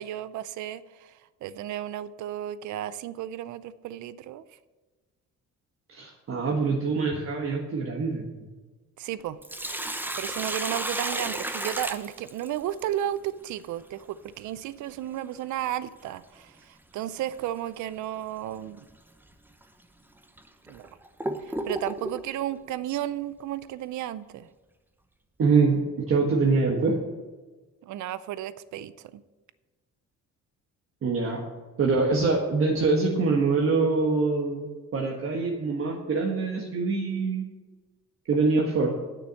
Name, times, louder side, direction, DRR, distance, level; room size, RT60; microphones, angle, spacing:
voice 1, 0.0-4.4 9.0-9.4 9.8-18.8 20.7-20.9 21.4-24.5 27.8-29.2, right 12 dB, 75° right, 16 dB, 0.6 m, -33 dB
voice 2, 5.9-8.2 25.4-27.0 31.0-31.4 31.8-37.4 38.3-39.0, right 4 dB, 45° right, 0 dB, 1.4 m, -24 dB
Sink (filling or washing), 9.2-12.8 15.2-15.3 17.2-17.4 17.9-18.0 18.8-18.9 19.6-19.7 20.4-22.3, right 1 dB, 5° right, 0.7 m, -33 dB
9.3 x 6.7 x 7.5 m, 1.3 s
cardioid pair, 115°, 30 cm